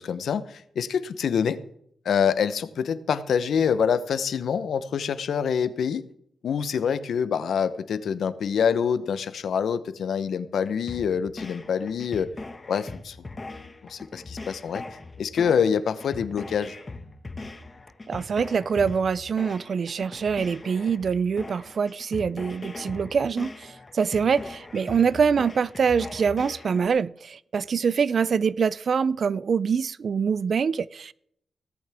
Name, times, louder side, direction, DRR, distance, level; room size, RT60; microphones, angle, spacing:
voice 1, 0.0-1.6 2.0-6.1 6.4-12.3 12.7-13.2 13.9-14.8 15.2-16.7, left 7 dB, 80° left, 0.8 m, -26 dB
sound 1, 10.9-26.9, left 3 dB, 30° left, 1.5 m, -40 dB
voice 2, 18.1-31.1, right 6 dB, 60° right, 0.4 m, -25 dB
17.0 x 14.0 x 3.5 m
cardioid pair, 90°, 0 cm